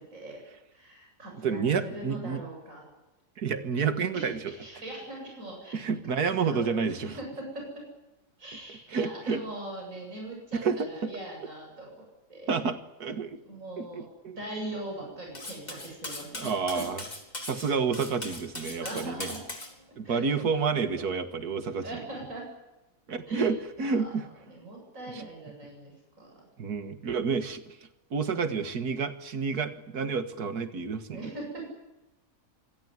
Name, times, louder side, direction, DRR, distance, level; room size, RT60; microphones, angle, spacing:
voice 1, 0.7-2.8 4.1-5.8 6.4-7.8 8.4-12.6 13.4-16.6 18.8-19.4 20.0-21.0 21.6-22.5 23.3-24.1 24.5-25.9 26.2-26.3 31.1-31.7, right 1 dB, 55° right, -1 dB, 8.5 m, -41 dB
voice 2, 1.4-2.4 3.4-4.4 5.7-7.2 8.9-9.4 10.6-11.1 12.5-13.4 13.8-14.4 16.3-17.0 17.5-19.3 20.0-22.0 23.1-24.3 25.2-25.3 26.6-27.8 28.1-31.3, right 5 dB, 75° right, 9 dB, 2.2 m, -29 dB
Cutlery silverware, 15.3-19.7, left 1 dB, 25° left, 3.6 m, -39 dB
26.5 x 17.0 x 9.6 m, 0.98 s
omnidirectional pair, 1.7 m